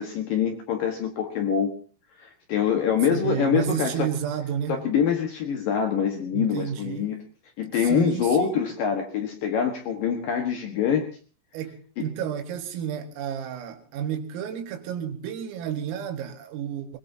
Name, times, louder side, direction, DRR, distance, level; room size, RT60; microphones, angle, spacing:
voice 1, 0.0-1.7 2.2-4.1 4.7-7.2 7.6-11.1 12.0-12.1, left 7 dB, 60° left, 2.4 m, -25 dB
voice 2, 3.1-4.8 6.3-7.1 7.8-8.5 11.5-17.0, right 9 dB, 85° right, 4.5 m, -31 dB
22.5 x 21.0 x 2.8 m
omnidirectional pair, 5.8 m